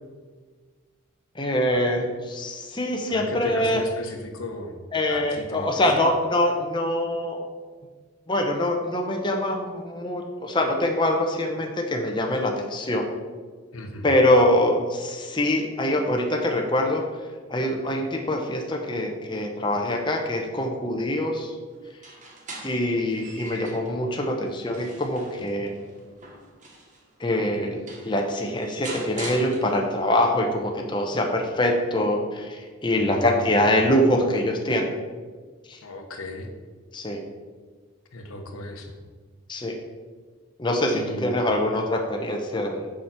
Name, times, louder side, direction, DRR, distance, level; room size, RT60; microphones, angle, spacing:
voice 1, 1.3-3.8 4.9-7.4 8.3-13.1 14.0-17.0 17.5-21.5 22.6-25.7 27.2-34.9 35.7-35.8 36.9-37.2 39.5-39.8 40.6-42.8, left 1 dB, 20° left, 1 dB, 0.7 m, -24 dB
voice 2, 3.1-4.8 5.1-6.1 13.7-14.1 32.9-33.7 35.8-36.5 38.1-38.9 40.8-41.5, left 1 dB, 90° left, 4 dB, 1.0 m, -36 dB
sound 1, 21.9-24.0 24.5-27.0 27.6-27.7 27.9-30.1, right 2 dB, 35° right, 1.3 m, -41 dB
6.9 x 5.0 x 5.8 m, 1.5 s
head